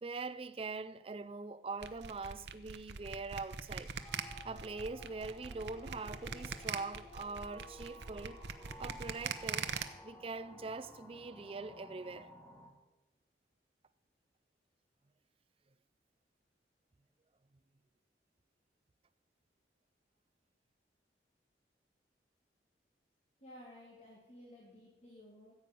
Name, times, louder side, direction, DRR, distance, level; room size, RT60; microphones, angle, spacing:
voice 1, 0.0-3.9 4.4-8.4 8.8-9.7 10.0-12.3, right 3 dB, 30° right, 0.4 m, -43 dB
sound 1, 1.8-9.8, right 6 dB, 80° right, 0.8 m, -41 dB
sound 2, 4.0-12.7, left 1 dB, 15° left, 1.4 m, -54 dB
voice 2, 23.4-25.5, left 1 dB, 40° left, 2.2 m, -55 dB
14.5 x 8.4 x 5.3 m
head